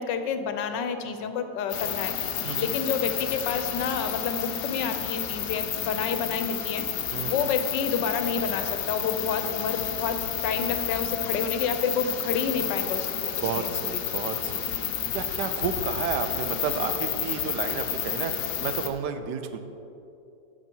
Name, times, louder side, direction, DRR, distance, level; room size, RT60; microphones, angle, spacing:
voice 1, 0.0-14.0, left 6 dB, 90° left, 8 dB, 1.4 m, -29 dB
sound 1, 1.7-18.9, left 10 dB, 70° left, 1.2 m, -31 dB
voice 2, 2.4-2.7 7.1-7.4 13.4-14.8 15.1-18.3 18.6-19.6, right 6 dB, 75° right, 9 dB, 1.2 m, -31 dB
12.0 x 6.0 x 4.5 m, 2.8 s
omnidirectional pair, 1.9 m